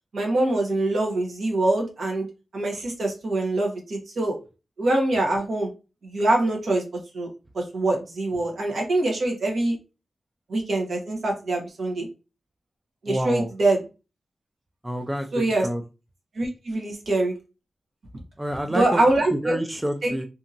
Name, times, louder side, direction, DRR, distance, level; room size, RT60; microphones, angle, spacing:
voice 1, 0.1-2.3 2.5-4.4 4.8-5.7 6.0-6.8 7.1-7.3 7.5-9.8 10.5-12.1 13.0-13.8 15.3-15.7 16.3-17.3 18.7-19.6 20.0-20.1, right 2 dB, 80° right, 1.0 m, -24 dB
voice 2, 13.1-13.5 14.8-15.3 15.6-15.8 18.4-19.0 19.3-20.3, right 1 dB, 10° right, 0.3 m, -27 dB
2.7 x 2.7 x 2.4 m
wide cardioid pair, 145°, 0 cm